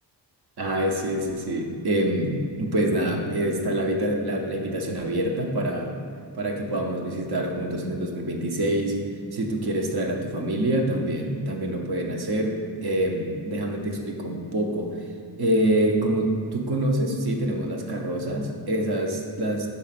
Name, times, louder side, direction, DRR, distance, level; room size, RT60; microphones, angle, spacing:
voice 1, 0.6-5.9 6.3-9.0 9.3-15.0 15.4-19.7, right 1 dB, 55° right, 1 dB, 0.9 m, -26 dB
5.6 x 4.1 x 5.8 m, 2.2 s
wide cardioid pair, 90°, 45 cm